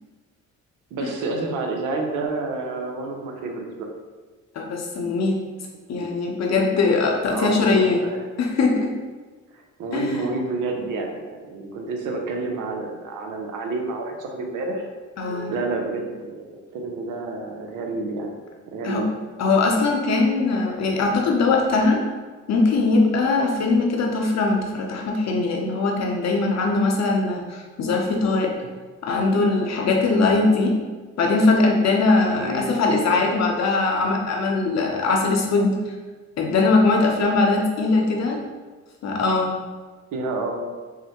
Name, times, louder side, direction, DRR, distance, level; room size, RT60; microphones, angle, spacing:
voice 1, 0.9-3.9 5.9-6.1 7.3-8.3 9.8-14.9 15.5-18.3 18.7-19.1 28.6-28.7 32.4-32.7 40.1-40.7, right 3 dB, 90° right, 2 dB, 0.7 m, -29 dB
voice 2, 4.6-5.4 5.9-8.0 8.4-8.9 9.9-10.3 15.2-15.5 18.8-19.0 19.4-22.0 22.5-28.5 29.0-30.7 31.2-35.8 36.4-38.4 39.0-39.5, left 3 dB, 60° left, 0 dB, 0.8 m, -21 dB
5.8 x 2.1 x 3.0 m, 1.4 s
cardioid pair, 90°, 30 cm